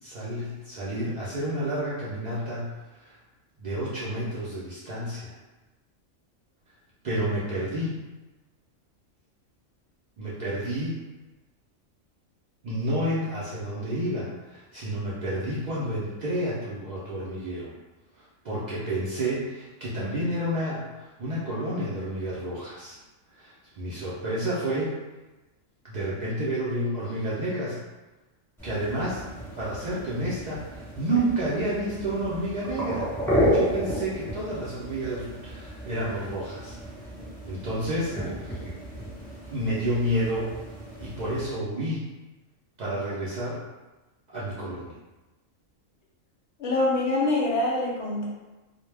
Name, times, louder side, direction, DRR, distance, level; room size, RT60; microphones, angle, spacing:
voice 1, 0.0-3.2 3.6-5.3 7.0-7.9 10.2-11.0 12.6-17.7 18.1-23.0 23.3-24.9 25.8-27.8 28.6-29.3 29.6-33.1 33.5-36.8 37.5-38.6 39.5-40.5 41.0-42.0 42.8-43.6 44.3-45.0, right 1 dB, 75° right, -8 dB, 0.4 m, -30 dB
sound 1, 28.6-41.5, equal, ahead, 1.1 m, -32 dB
voice 2, 46.6-48.3, left 2 dB, 65° left, -4 dB, 0.8 m, -25 dB
2.1 x 2.0 x 3.2 m, 1.1 s
omnidirectional pair, 1.3 m